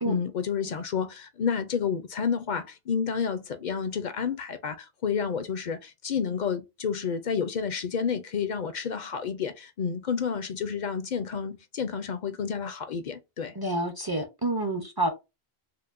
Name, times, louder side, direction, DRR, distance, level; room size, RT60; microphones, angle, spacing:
voice 1, 0.0-13.5, left 6 dB, 55° left, 0.5 m, -30 dB
voice 2, 13.5-15.1, right 2 dB, 30° right, 0.5 m, -28 dB
4.6 x 2.1 x 2.5 m
omnidirectional pair, 1.1 m